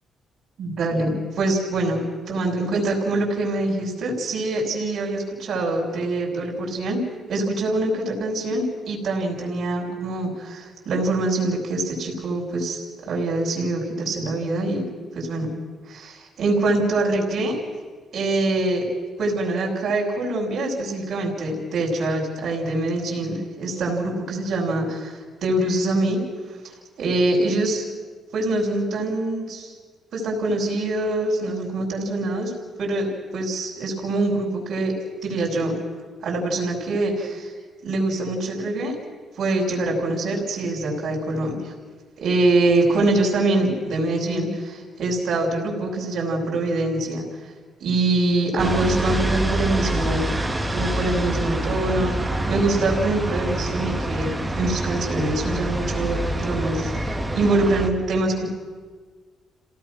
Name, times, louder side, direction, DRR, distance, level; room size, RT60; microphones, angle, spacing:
voice 1, 0.6-7.0 7.3-14.8 15.1-15.5 15.9-17.6 18.1-18.8 19.2-26.2 27.0-27.8 28.3-29.7 30.1-32.5 32.8-33.1 33.3-34.9 35.2-35.7 36.2-37.5 37.8-39.0 39.4-41.7 42.2-47.3 47.8-50.3 50.7-52.2 52.5-58.5, right 2 dB, 60° right, -2 dB, 6.0 m, -24 dB
sound 1, 48.6-57.9, right 1 dB, 15° right, 2.1 m, -26 dB
28.0 x 17.5 x 6.2 m, 1.5 s
cardioid pair, 90°, 0 cm